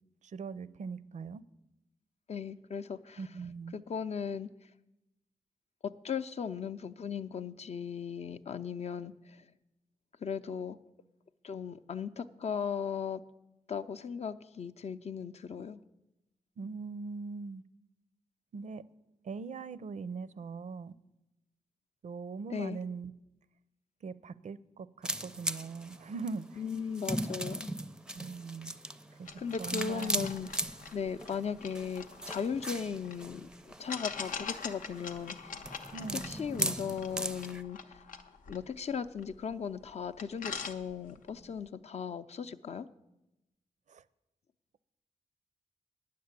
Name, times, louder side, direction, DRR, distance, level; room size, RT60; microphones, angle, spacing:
voice 1, 0.2-1.4 3.2-3.8 16.6-17.6 18.5-18.8 19.2-20.9 22.0-23.1 24.0-26.6 28.1-28.7 29.2-29.3 29.6-30.3 35.9-36.3 43.9-44.0, right 4 dB, 65° right, 0.5 m, -41 dB
voice 2, 2.3-3.2 3.7-4.5 5.8-9.4 10.2-10.8 11.4-13.2 13.7-15.8 22.5-22.8 26.6-27.7 29.4-30.5 30.9-35.6 36.2-37.8 38.5-42.9, left 6 dB, 55° left, 0.5 m, -37 dB
sound 1, 25.0-37.6, right 1 dB, 5° right, 0.5 m, -39 dB
sound 2, 29.3-33.2 33.9-39.5 39.9-40.0 40.2-41.3, left 5 dB, 85° left, 0.7 m, -44 dB
9.4 x 6.7 x 8.2 m
cardioid pair, 80°, 13 cm